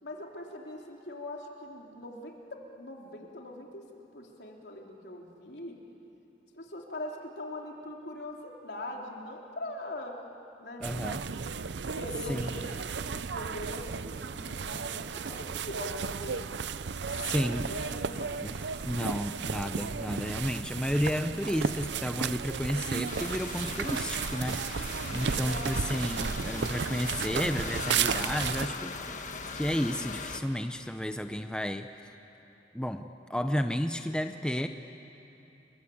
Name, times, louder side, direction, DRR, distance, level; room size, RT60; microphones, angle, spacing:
voice 1, 0.0-3.8 4.1-5.8 6.5-10.2 10.6-11.0 11.9-15.0 15.4-16.6 17.2-17.4 17.7-18.5 25.2-26.2, left 1 dB, 70° left, 0 dB, 3.4 m, -42 dB
voice 2, 10.8-11.2 12.3-12.5 17.1-17.7 18.4-29.2 29.5-31.9 32.7-34.7, equal, 5° left, 7 dB, 0.7 m, -32 dB
sound 1, 10.8-28.7, right 6 dB, 80° right, 0.6 m, -34 dB
sound 2, 11.2-19.2, right 1 dB, 55° right, 5.0 m, -57 dB
sound 3, 23.1-30.4, left 4 dB, 45° left, 1.4 m, -39 dB
30.0 x 22.5 x 8.6 m, 2.9 s
head